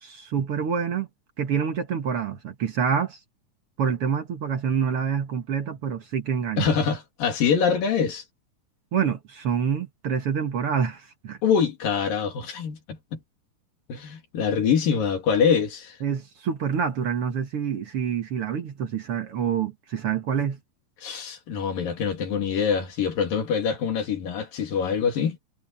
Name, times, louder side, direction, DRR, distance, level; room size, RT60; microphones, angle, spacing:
voice 1, 0.0-1.1 1.4-3.2 3.8-6.7 8.9-11.4 16.0-20.6, right 7 dB, 55° right, 1.9 m, -27 dB
voice 2, 6.6-8.2 11.4-13.2 13.9-16.0 21.0-25.4, left 6 dB, 85° left, 4.5 m, -24 dB
omnidirectional pair, 3.9 m